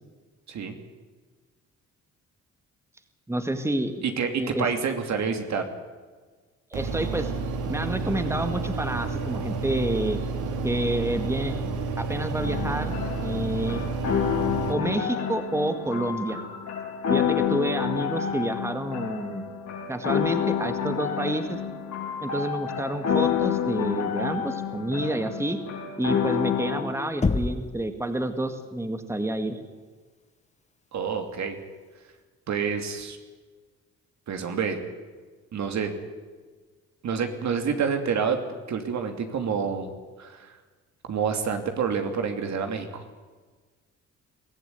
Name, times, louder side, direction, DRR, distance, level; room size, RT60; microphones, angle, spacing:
voice 1, 3.3-4.0 4.3-4.7 6.7-7.3 7.7-10.2 10.6-11.7 12.0-12.9 13.2-13.8 14.7-16.4 17.1-19.4 19.9-21.6 22.2-25.6 26.0-29.6, right 1 dB, 10° right, 7 dB, 2.0 m, -29 dB
voice 2, 4.2-5.6 30.9-31.6 32.5-33.2 34.3-34.8 35.5-35.9 37.0-38.4 38.7-39.9 40.2-40.5 41.0-43.0, right 6 dB, 65° right, 5 dB, 2.9 m, -28 dB
sound 1, 6.7-14.7, right 4 dB, 80° right, 2.6 m, -30 dB
sound 2, 12.4-26.8, left 8 dB, 65° left, 3.8 m, -29 dB
Knock, 27.2-27.9, left 4 dB, 25° left, 1.2 m, -25 dB
22.5 x 15.0 x 9.6 m, 1.4 s
cardioid pair, 90°, 30 cm